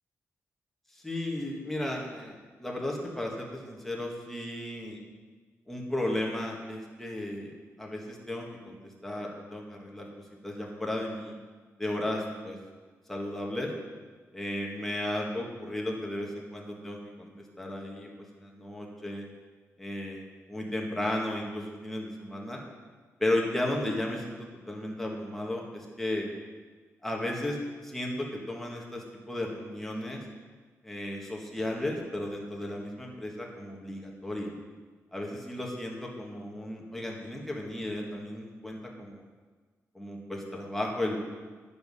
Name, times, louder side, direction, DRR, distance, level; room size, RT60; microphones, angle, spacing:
voice 1, 0.9-5.0 5.7-8.7 9.0-10.1 10.4-11.3 11.8-12.6 13.1-13.7 14.3-17.3 17.6-19.2 19.8-20.2 20.5-22.6 23.2-24.3 24.7-26.3 27.0-30.2 30.8-34.5 35.1-39.2 39.9-41.2, left 1 dB, 5° left, -1 dB, 1.6 m, -34 dB
10.5 x 6.9 x 5.5 m, 1.4 s
wide cardioid pair, 140°, 5 cm